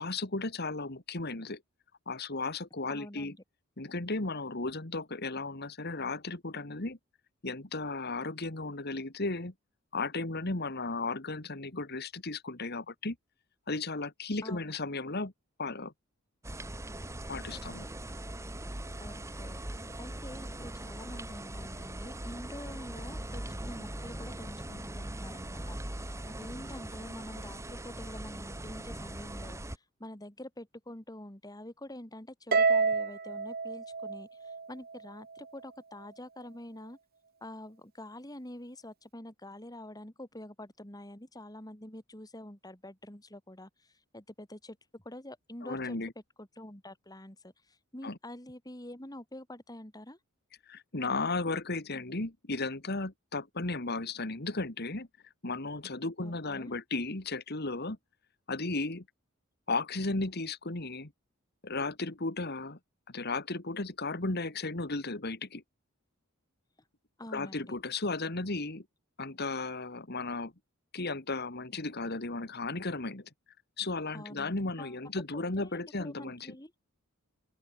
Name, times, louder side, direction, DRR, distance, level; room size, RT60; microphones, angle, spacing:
voice 1, 0.0-1.6 2.1-3.3 3.8-7.0 7.4-9.5 9.9-13.2 13.7-15.3 15.6-15.9 17.3-17.9 45.6-46.1 48.0-48.2 50.7-55.1 55.4-58.0 58.5-59.0 59.7-61.1 61.6-62.8 63.1-65.6 67.3-68.8 69.2-70.5 70.9-73.3 73.8-76.5, left 3 dB, 50° left, 2.1 m, -35 dB
voice 2, 2.9-3.4 14.4-14.7 19.0-37.0 37.4-46.0 46.4-50.2 56.2-56.8 67.2-67.7 74.1-75.0 75.3-76.7, left 1 dB, 20° left, 3.4 m, -47 dB
sound 1, 16.4-29.8, right 1 dB, 15° right, 1.5 m, -41 dB
Harp, 32.5-35.0, right 4 dB, 45° right, 1.2 m, -28 dB
open air
head